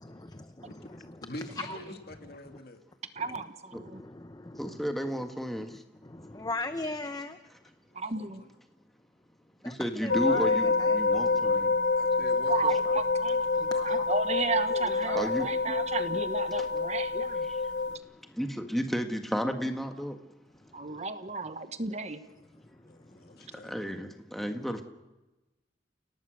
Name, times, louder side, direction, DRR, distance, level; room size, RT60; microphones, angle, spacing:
voice 1, 0.0-1.8 2.4-2.6 3.2-3.4 3.7-4.9 5.6-7.4 9.6-11.9 13.5-14.0 14.7-15.8 17.9-18.4 20.5-21.0 22.4-23.8 24.5-24.6, left 2 dB, 20° left, 9 dB, 0.8 m, -42 dB
voice 2, 0.9-2.8 7.9-8.5 12.0-12.8 22.9-23.7, left 1 dB, 60° left, 5 dB, 2.4 m, -45 dB
voice 3, 3.1-3.5 3.7-4.0 7.9-8.4 12.5-12.8 13.2-17.5 20.7-22.2, right 4 dB, 40° right, 10 dB, 1.2 m, -33 dB
voice 4, 4.6-5.8 9.6-11.7 13.8-13.9 15.1-15.5 17.5-17.6 18.3-20.2 23.6-24.8, equal, ahead, 5 dB, 1.7 m, -32 dB
sound 1, 10.1-18.0, left 4 dB, 80° left, 0.8 m, -27 dB
30.0 x 18.0 x 6.4 m, 1.0 s
head